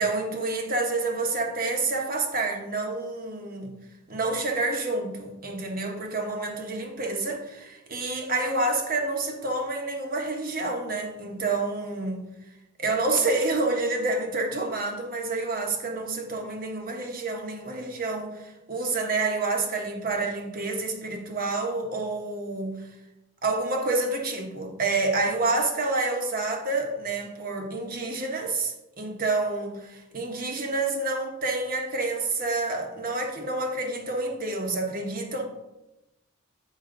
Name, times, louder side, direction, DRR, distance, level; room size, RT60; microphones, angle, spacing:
voice 1, 0.0-3.7 4.1-12.2 12.8-22.9 23.4-35.4, right 3 dB, 45° right, 3 dB, 1.2 m, -28 dB
8.3 x 5.8 x 3.8 m, 0.96 s
head